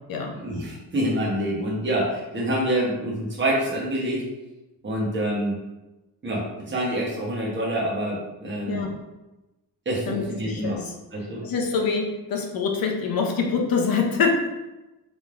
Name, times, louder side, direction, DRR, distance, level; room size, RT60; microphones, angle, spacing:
voice 1, 0.3-4.2 4.8-5.6 6.2-8.9 9.8-10.8 11.1-11.5, right 1 dB, 30° right, -4 dB, 1.0 m, -26 dB
voice 2, 10.1-10.9 11.4-14.5, left 5 dB, 60° left, 1 dB, 0.7 m, -25 dB
4.1 x 3.4 x 2.5 m, 1.0 s
wide cardioid pair, 175°, 40 cm